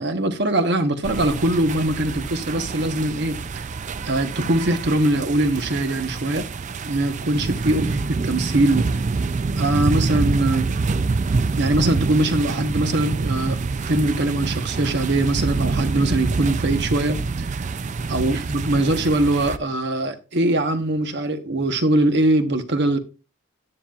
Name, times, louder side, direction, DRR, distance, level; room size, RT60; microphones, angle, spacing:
voice 1, 0.0-3.6 4.0-6.5 6.8-9.0 9.6-10.7 11.6-17.5 18.1-23.0, right 1 dB, 50° right, 1.0 m, -22 dB
sound 1, 1.0-19.6, right 4 dB, 35° right, 0.3 m, -26 dB
10.0 x 9.9 x 2.4 m
head